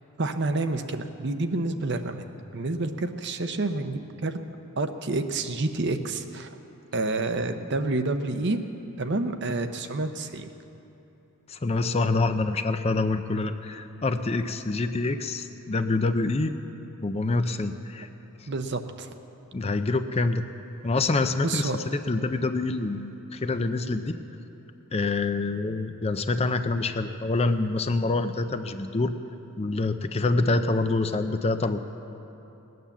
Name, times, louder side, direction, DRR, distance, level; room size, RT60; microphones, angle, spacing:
voice 1, 0.2-2.2 2.5-4.4 4.8-6.6 6.9-8.6 9.0-10.5 18.5-19.1 21.4-21.8, right 2 dB, 50° right, 8 dB, 0.8 m, -28 dB
voice 2, 11.5-16.6 17.0-18.1 18.4-18.5 19.5-20.4 20.8-24.2 24.9-29.1 29.6-31.8, left 3 dB, 30° left, 9 dB, 0.5 m, -26 dB
18.5 x 9.4 x 7.2 m, 2.9 s
head